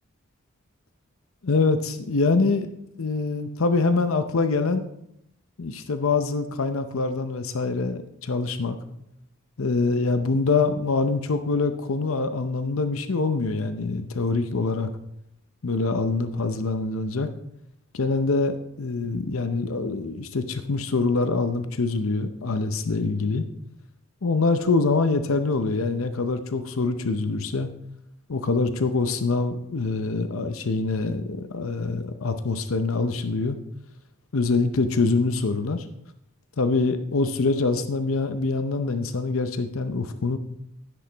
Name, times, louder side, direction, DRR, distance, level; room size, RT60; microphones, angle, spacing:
voice 1, 1.4-2.7 3.0-4.9 5.6-8.8 9.6-14.9 15.6-17.3 17.9-23.5 24.2-27.7 28.3-33.6 34.3-35.8 36.6-40.4, left 3 dB, 75° left, 9 dB, 0.7 m, -24 dB
11.5 x 10.0 x 3.4 m, 0.75 s
head